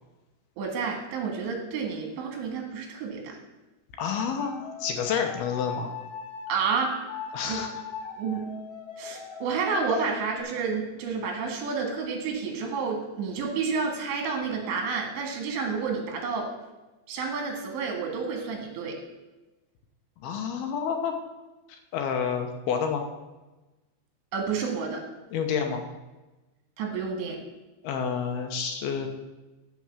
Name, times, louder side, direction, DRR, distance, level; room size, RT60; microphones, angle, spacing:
voice 1, 0.6-3.4 6.5-7.0 7.4-7.6 8.1-8.5 9.0-16.5 17.1-19.0 24.3-25.0 26.8-27.4, right 5 dB, 80° right, 2 dB, 4.1 m, -30 dB
voice 2, 4.0-5.9 7.3-7.7 20.2-21.2 21.7-23.0 25.3-25.8 27.8-29.1, left 6 dB, 75° left, 4 dB, 2.7 m, -29 dB
sound 1, 4.3-6.5 7.1-10.4, left 7 dB, 50° left, 2.5 m, -39 dB
14.0 x 4.6 x 7.3 m, 1.1 s
omnidirectional pair, 5.0 m